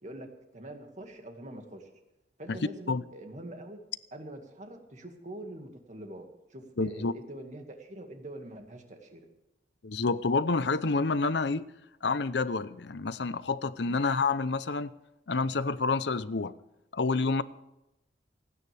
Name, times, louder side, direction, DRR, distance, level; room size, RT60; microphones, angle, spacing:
voice 1, 0.0-1.9 2.4-3.8 4.1-9.3 13.9-14.0, right 1 dB, 40° right, 2.1 m, -44 dB
voice 2, 6.8-7.1 9.8-11.7 12.0-14.9 15.3-16.5 16.9-17.4, left 3 dB, 65° left, 0.7 m, -28 dB
28.5 x 9.7 x 3.5 m
head